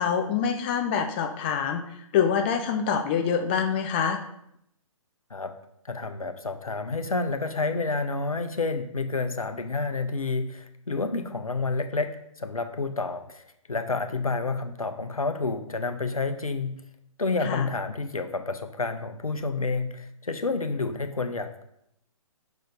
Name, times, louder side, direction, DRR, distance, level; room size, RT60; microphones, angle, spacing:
voice 1, 0.0-1.8 2.1-4.2 17.4-17.6, left 7 dB, 20° left, 5 dB, 0.4 m, -25 dB
voice 2, 5.8-13.4 13.7-16.8 17.2-21.6, left 3 dB, 85° left, 8 dB, 0.8 m, -29 dB
5.8 x 5.0 x 3.9 m, 0.75 s
figure-of-eight pair, 135°, 18 cm